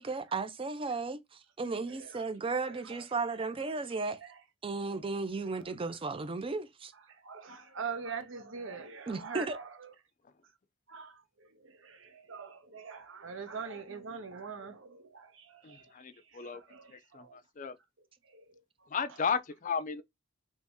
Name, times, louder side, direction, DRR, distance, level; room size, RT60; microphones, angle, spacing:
voice 1, 0.0-4.2 4.6-6.9 9.1-9.6, right 3 dB, 25° right, 0.5 m, -35 dB
voice 2, 2.6-3.0 4.2-4.3 7.2-9.7 10.9-11.2 11.6-15.9 16.4-17.4 18.3-18.4, right 5 dB, 70° right, 0.8 m, -43 dB
voice 3, 15.6-16.6 16.9-17.8 18.9-20.0, left 6 dB, 40° left, 0.4 m, -34 dB
3.0 x 2.7 x 3.5 m
head